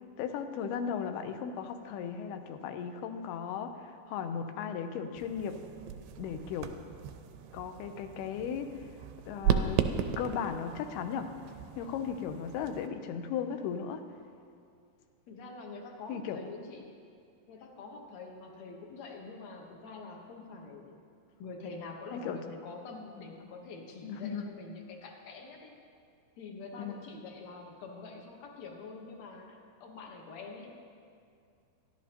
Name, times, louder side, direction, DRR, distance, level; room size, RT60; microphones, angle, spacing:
voice 1, 0.2-5.6 6.2-6.7 7.5-8.8 9.3-11.3 11.8-14.0 16.1-16.4 22.1-22.4 24.0-24.5 26.7-27.0, left 7 dB, 80° left, 7 dB, 2.7 m, -36 dB
sound 1, 5.2-12.9, right 8 dB, 90° right, 2.7 m, -36 dB
voice 2, 15.3-16.9 17.5-21.0 21.4-25.7 26.4-30.7, left 3 dB, 65° left, 1 dB, 1.8 m, -46 dB
25.5 x 11.5 x 3.0 m, 2.3 s
omnidirectional pair, 4.7 m